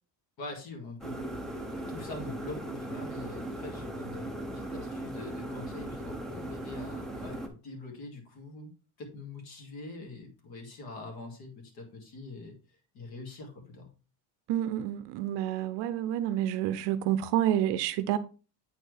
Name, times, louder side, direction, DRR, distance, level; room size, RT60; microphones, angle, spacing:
voice 1, 0.4-8.7 9.0-13.9, left 2 dB, 55° left, 2.1 m, -44 dB
sound 1, 1.0-7.5, right 1 dB, ahead, 0.4 m, -38 dB
voice 2, 14.5-18.2, right 11 dB, 65° right, 0.6 m, -29 dB
8.2 x 4.4 x 3.3 m
cardioid pair, 170°, 45 cm